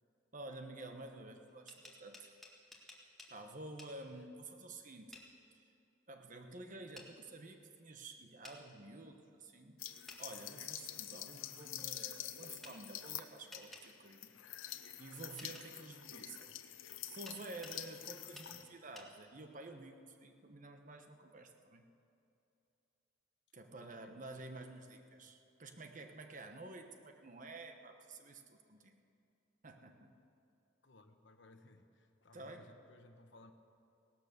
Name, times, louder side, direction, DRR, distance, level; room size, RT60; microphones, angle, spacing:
voice 1, 0.3-2.3 3.3-5.2 5.5-5.6 6.1-9.8 10.2-14.3 15.0-16.5 16.8-21.8 23.5-29.0 29.6-30.2 32.3-32.7, right 2 dB, 40° right, 6 dB, 1.1 m, -51 dB
sound 1, 1.5-3.3 3.8-3.9 5.1-5.3 6.9-7.1 8.4-8.6 10.1-10.2 12.6-12.8 13.5-13.9 15.4-15.7 17.3-17.8 18.3-18.5 18.9-19.1, left 1 dB, ahead, 1.7 m, -54 dB
sound 2, 9.8-18.6, left 12 dB, 90° left, 0.8 m, -47 dB
voice 2, 16.1-16.6 18.5-18.7 23.8-24.4 25.3-25.4 30.8-33.5, left 2 dB, 65° left, 7 dB, 1.1 m, -62 dB
17.5 x 12.0 x 6.8 m, 2.6 s
head